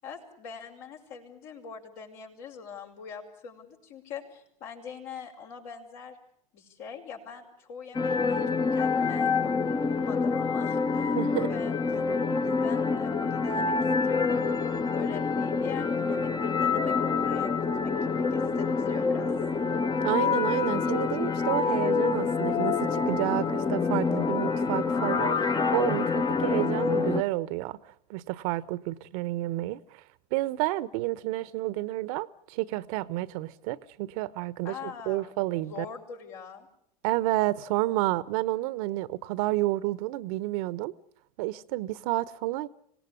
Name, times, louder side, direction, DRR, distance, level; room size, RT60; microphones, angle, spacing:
voice 1, 0.0-6.2 6.5-13.7 14.0-14.4 14.9-17.5 17.8-19.3 34.6-35.3 35.6-36.7, left 6 dB, 60° left, 5.8 m, -43 dB
sound 1, 7.9-27.2, left 5 dB, 20° left, 1.2 m, -27 dB
voice 2, 11.1-11.5 20.0-27.8 28.1-29.8 30.3-35.8 37.0-40.9 41.4-42.7, right 17 dB, 60° right, 1.1 m, -30 dB
26.0 x 18.5 x 9.8 m
hypercardioid pair, 85°, 20 cm